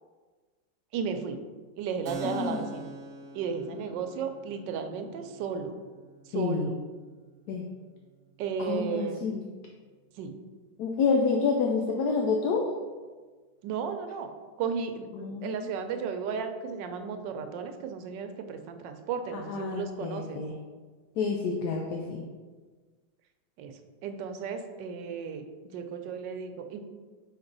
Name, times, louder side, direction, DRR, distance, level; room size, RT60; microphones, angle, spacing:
voice 1, 0.9-1.4 1.8-2.9 3.3-5.8 6.3-6.7 8.4-9.2 10.2-10.3 13.6-14.3 14.6-20.4 23.6-23.7 24.0-25.4 25.7-26.8, right 6 dB, 85° right, 6 dB, 1.3 m, -34 dB
Keyboard (musical), 2.0-9.4, right 2 dB, 55° right, 0.8 m, -46 dB
voice 2, 2.2-2.7 6.3-6.7 7.5-7.7 8.6-9.5 10.8-12.8 15.1-15.7 19.3-20.5 21.2-22.2, left 4 dB, 75° left, 1 dB, 1.1 m, -29 dB
5.2 x 4.7 x 3.9 m, 1.4 s
omnidirectional pair, 1.9 m